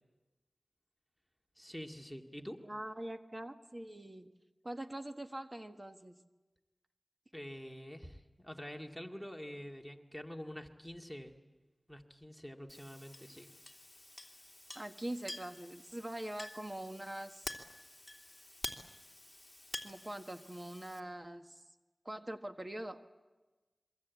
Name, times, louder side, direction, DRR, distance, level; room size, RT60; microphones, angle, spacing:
voice 1, 1.6-2.6 7.3-11.4 11.9-13.5, equal, ahead, 2 dB, 2.1 m, -46 dB
voice 2, 2.6-4.3 4.6-6.2 14.7-17.5 19.8-21.6 22.0-23.0, right 1 dB, 30° right, 6 dB, 1.5 m, -43 dB
Chink clink, 12.7-21.0, left 1 dB, 15° left, 2.9 m, -48 dB
26.5 x 23.5 x 8.4 m, 1.2 s
wide cardioid pair, 50°, 0 cm